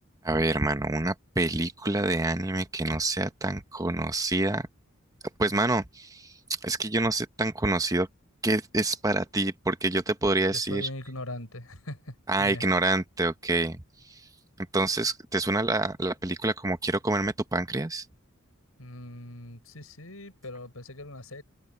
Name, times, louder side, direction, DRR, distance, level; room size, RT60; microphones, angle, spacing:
voice 1, 0.2-4.7 5.4-6.3 6.6-8.1 8.4-10.9 12.3-13.8 14.7-18.0, right 2 dB, 15° right, 1.1 m, -27 dB
voice 2, 10.5-12.7 18.8-21.4, left 1 dB, 85° left, 7.0 m, -40 dB
head